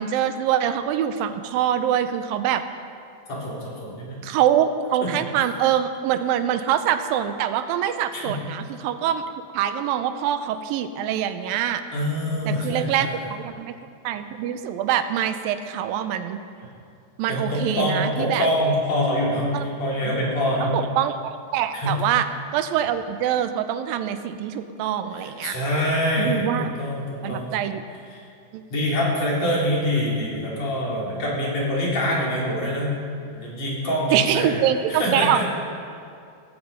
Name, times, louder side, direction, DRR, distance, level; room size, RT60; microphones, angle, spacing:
voice 1, 0.0-2.6 4.2-9.2 9.5-11.8 12.5-13.7 14.0-16.4 17.2-18.5 19.5-19.7 20.0-20.1 20.6-22.3 22.5-25.6 26.2-26.7 27.2-27.8 28.5-28.6 34.1-35.4, right 10 dB, 90° right, 10 dB, 2.5 m, -24 dB
voice 2, 3.3-4.2 5.0-5.1 8.1-8.4 11.9-13.2 17.3-20.8 21.7-21.9 25.2-27.6 28.1-28.2 28.7-32.9 33.3-34.6 34.9-35.4, equal, 50° left, -5 dB, 4.9 m, -25 dB
18.5 x 14.5 x 5.1 m, 2.3 s
omnidirectional pair, 4.0 m